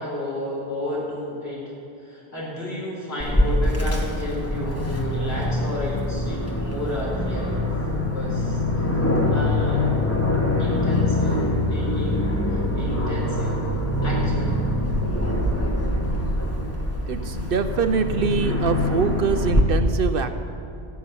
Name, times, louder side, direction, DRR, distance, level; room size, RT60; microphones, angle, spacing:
voice 1, 0.0-7.5 7.9-8.9 9.3-9.9 10.6-11.4 11.7-12.2 12.5-13.7 14.0-14.6, left 1 dB, 70° left, -5 dB, 4.6 m, -32 dB
Aircraft, 3.2-19.6, left 1 dB, 15° left, 1.4 m, -24 dB
voice 2, 17.1-20.4, right 5 dB, 60° right, 9 dB, 0.8 m, -24 dB
15.0 x 7.0 x 9.8 m, 2.6 s
omnidirectional pair, 1.1 m